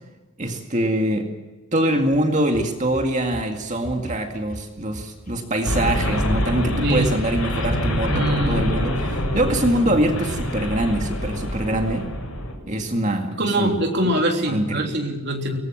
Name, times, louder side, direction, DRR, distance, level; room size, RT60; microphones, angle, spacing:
voice 1, 0.4-1.3 1.7-12.1 12.7-13.8 14.5-14.9, right 1 dB, 35° right, 4 dB, 2.1 m, -23 dB
sound 1, 2.1-3.5 3.8-5.8 7.0-7.8 8.0-8.2 8.6-8.7 9.0-9.1, left 1 dB, 35° left, 1.3 m, -40 dB
sound 2, 5.6-12.5, left 1 dB, 75° left, 7.0 m, -25 dB
voice 2, 8.1-8.7 13.3-15.6, right 1 dB, 50° right, 2 dB, 3.5 m, -23 dB
23.0 x 19.5 x 7.5 m, 1.2 s
head